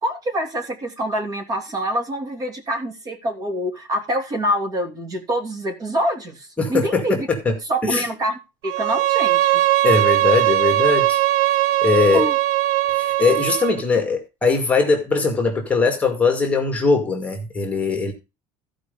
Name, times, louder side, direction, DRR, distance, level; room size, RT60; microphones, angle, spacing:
voice 1, 0.0-7.3 7.7-9.6 12.1-12.4, equal, 30° right, 4 dB, 2.8 m, -25 dB
voice 2, 6.6-7.5 7.8-8.1 9.8-11.2 11.8-12.2 12.9-18.1, left 4 dB, 10° left, 3 dB, 2.2 m, -20 dB
Bowed string instrument, 8.6-13.8, right 16 dB, 70° right, 0.7 m, -19 dB
14.5 x 5.2 x 5.2 m, 0.27 s
cardioid pair, 155°, 11 cm